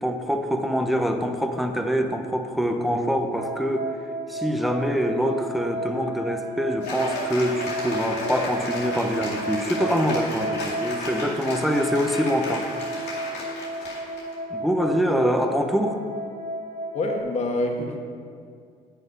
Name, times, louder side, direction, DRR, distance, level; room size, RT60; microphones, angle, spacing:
voice 1, 0.0-3.9 4.3-12.7 13.1-13.2 14.5-16.0, equal, ahead, 5 dB, 0.7 m, -25 dB
sound 1, 3.3-17.2, right 2 dB, 65° right, 0.7 m, -33 dB
Cheering / Applause, 6.8-14.3, left 2 dB, 85° left, 2.2 m, -34 dB
voice 2, 16.9-18.0, left 2 dB, 40° left, 1 dB, 1.4 m, -26 dB
9.1 x 6.1 x 5.3 m, 2.2 s
cardioid pair, 110°, 17 cm